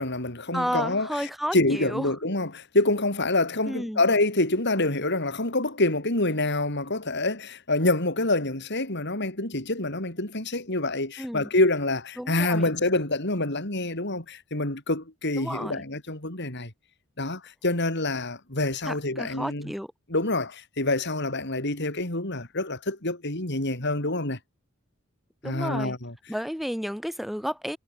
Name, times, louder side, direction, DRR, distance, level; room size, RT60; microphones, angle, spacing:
voice 1, 0.0-16.7 17.2-19.7 20.1-24.4 25.4-26.2, left 2 dB, 55° left, 5.9 m, -26 dB
voice 2, 0.5-2.1 3.7-4.0 11.2-11.5 12.2-12.7 15.4-15.8 18.9-19.9 25.4-26.0 26.3-27.8, equal, ahead, 5.6 m, -32 dB
head